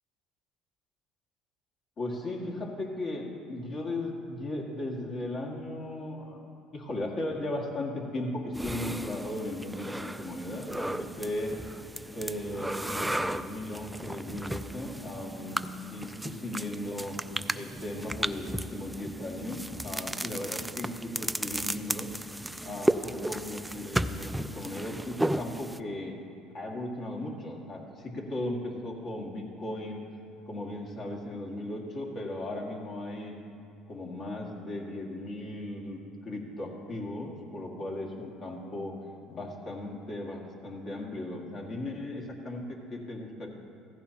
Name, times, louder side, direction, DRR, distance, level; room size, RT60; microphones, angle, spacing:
voice 1, 2.0-11.5 12.1-17.2 17.5-22.1 22.6-26.2 26.5-30.0 30.5-33.4 33.9-39.0 39.3-43.5, left 1 dB, 50° left, -1 dB, 2.0 m, -37 dB
sound 1, 8.5-25.8, right 1 dB, 5° right, 0.3 m, -34 dB
15.5 x 15.0 x 2.9 m, 2.4 s
supercardioid pair, 90°, 0 cm